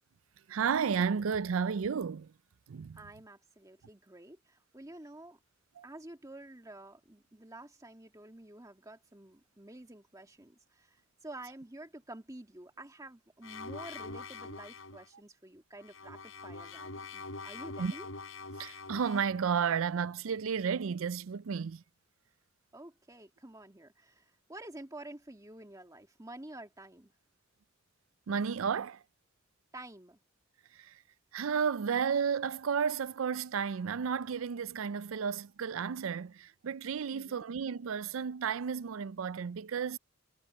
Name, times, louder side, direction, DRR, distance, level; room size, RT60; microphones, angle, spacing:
voice 1, 0.5-2.3 2.7-3.0 5.8-5.9 17.8-17.9 18.6-21.8 28.3-29.0 30.8-30.9 31.3-40.0, right 6 dB, 75° right, 0.4 m, -32 dB
voice 2, 2.9-5.4 5.8-18.1 22.7-27.1 29.7-30.2 37.1-37.4, right 1 dB, 15° right, 1.9 m, -50 dB
sound 1, 13.4-15.0 15.8-19.4, left 3 dB, 70° left, 5.4 m, -44 dB
head